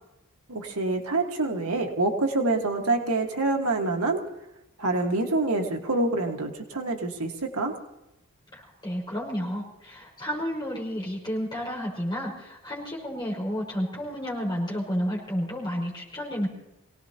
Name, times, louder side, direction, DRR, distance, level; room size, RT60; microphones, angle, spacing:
voice 1, 0.5-4.2 4.8-7.8, right 2 dB, 80° right, 2 dB, 1.7 m, -26 dB
voice 2, 8.5-16.5, equal, 20° left, -3 dB, 5.5 m, -31 dB
27.0 x 18.0 x 2.9 m, 0.90 s
head